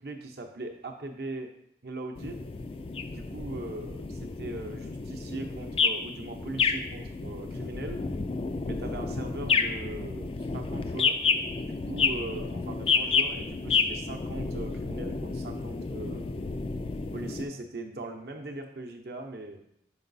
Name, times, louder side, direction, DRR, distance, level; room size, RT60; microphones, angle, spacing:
voice 1, 0.0-1.5 1.8-2.4 3.1-8.0 8.6-11.2 11.6-16.2 17.1-19.6, right 2 dB, 60° right, 3 dB, 0.7 m, -40 dB
sound 1, 2.2-17.4, left 5 dB, 30° left, 0.3 m, -30 dB
5.5 x 4.6 x 4.0 m, 0.73 s
head